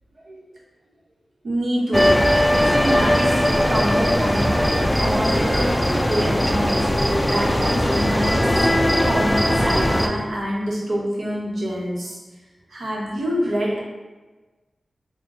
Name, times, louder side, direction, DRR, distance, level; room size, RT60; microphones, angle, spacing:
voice 1, 1.4-2.1 2.5-8.5 9.1-12.2 12.7-13.8, equal, 85° right, -4 dB, 0.9 m, -26 dB
sound 1, 1.9-10.1, equal, 10° left, 0.3 m, -19 dB
3.8 x 2.2 x 3.7 m, 1.2 s
wide cardioid pair, 80°, 0 cm